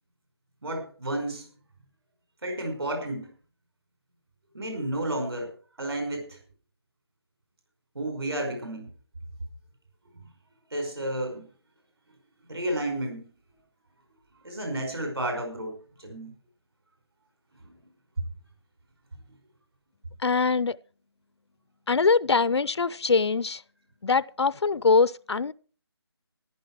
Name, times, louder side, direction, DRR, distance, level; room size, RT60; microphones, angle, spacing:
voice 1, 0.6-1.5 2.4-3.3 4.5-5.5 5.8-6.4 7.9-8.9 10.7-11.4 12.5-13.3 14.4-16.3, right 1 dB, 65° right, 5.2 m, -31 dB
voice 2, 20.2-20.8 21.9-23.6 24.0-25.5, left 4 dB, 80° left, 0.6 m, -23 dB
14.5 x 11.5 x 4.7 m
figure-of-eight pair, 175°, 14 cm